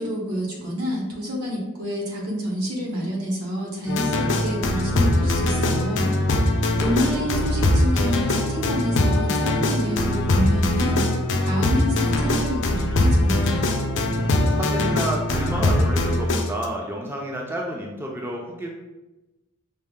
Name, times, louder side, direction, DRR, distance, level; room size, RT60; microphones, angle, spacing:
voice 1, 0.0-11.0 11.4-13.7, equal, 75° right, -3 dB, 1.2 m, -28 dB
sound 1, 3.9-16.6, left 1 dB, 55° left, 0.5 m, -22 dB
voice 2, 6.3-7.2 14.1-18.7, right 1 dB, 10° right, -1 dB, 0.4 m, -31 dB
5.3 x 2.0 x 3.6 m, 1.0 s
head